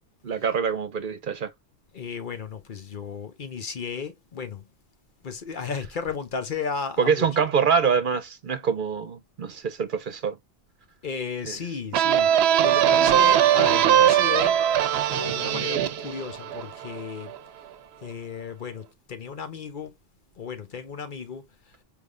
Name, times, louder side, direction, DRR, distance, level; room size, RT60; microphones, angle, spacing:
voice 1, 0.2-1.5 7.0-10.4 11.4-11.6, right 6 dB, 60° right, 0.8 m, -25 dB
voice 2, 1.9-4.7 5.2-7.3 11.0-14.6 15.0-17.4 18.0-20.0 20.4-21.7, left 6 dB, 55° left, 0.9 m, -34 dB
sound 1, 11.9-17.4, right 10 dB, 85° right, 0.8 m, -21 dB
4.8 x 3.4 x 2.5 m
omnidirectional pair, 1.0 m